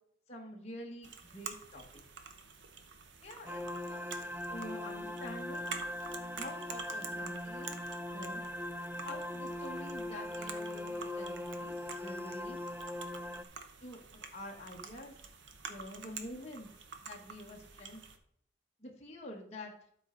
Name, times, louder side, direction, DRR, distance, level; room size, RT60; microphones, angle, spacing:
voice 1, 0.3-2.0 3.2-3.6 3.9-4.1 4.5-5.9 6.4-7.7 8.1-8.4 9.0-12.8 13.8-15.1 15.7-16.7 17.0-18.0 18.8-19.7, left 1 dB, 35° left, -1 dB, 1.2 m, -47 dB
sound 1, 1.0-18.2, right 5 dB, 70° right, 0.9 m, -49 dB
sound 2, 3.5-13.4, left 1 dB, 10° right, 0.4 m, -40 dB
12.5 x 4.3 x 3.8 m, 0.64 s
head